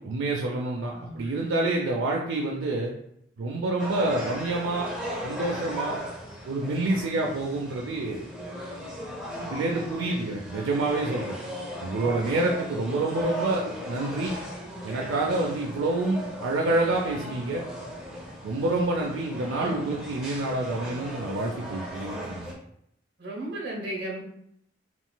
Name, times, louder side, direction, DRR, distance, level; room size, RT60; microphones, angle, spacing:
voice 1, 0.0-2.9 3.4-4.9 5.2-6.0 6.5-8.3 9.4-11.4 11.8-14.3 14.8-17.6 18.4-22.5, right 2 dB, 85° right, -1 dB, 0.4 m, -28 dB
voice 2, 0.9-1.5 9.4-9.5 12.0-12.3 19.6-19.9 23.2-24.2, right 1 dB, 55° right, -2 dB, 0.9 m, -36 dB
sound 1, 3.8-22.5, equal, 5° right, 0.6 m, -37 dB
3.8 x 2.4 x 2.2 m, 0.72 s
head